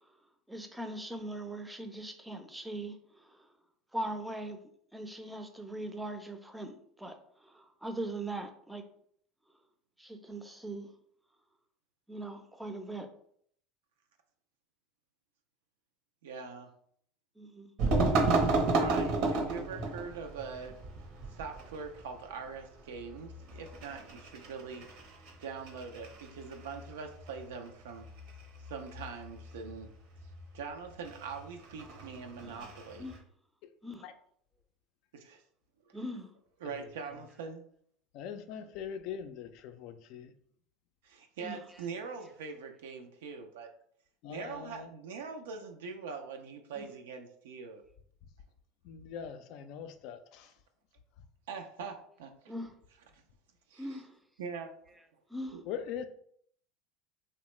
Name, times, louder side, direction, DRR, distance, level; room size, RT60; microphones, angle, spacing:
voice 1, 0.5-3.0 3.3-3.4 3.9-4.6 4.9-8.8 10.0-10.9 12.1-13.1 17.4-17.7 32.4-32.7 33.0-33.2 33.8-34.1 35.9-36.3 41.4-41.7 46.7-46.9 52.5-52.7 53.8-54.1 55.0-55.1 55.3-55.6, right 1 dB, 5° right, 0.4 m, -40 dB
voice 2, 16.2-16.7 18.7-20.8 21.3-24.9 25.4-28.1 28.7-29.9 30.5-33.1 35.1-35.4 35.9-36.0 36.6-37.6 41.0-43.7 44.3-47.8 51.5-52.3 53.7-54.0 54.4-54.7 55.5-55.6, right 5 dB, 80° right, 0.3 m, -43 dB
sound 1, 17.8-33.2, right 3 dB, 65° right, 0.7 m, -34 dB
voice 3, 38.1-40.3 44.2-44.9 48.8-50.5 55.7-56.0, left 8 dB, 60° left, 0.3 m, -42 dB
2.8 x 2.1 x 3.1 m
hypercardioid pair, 85°, 0 cm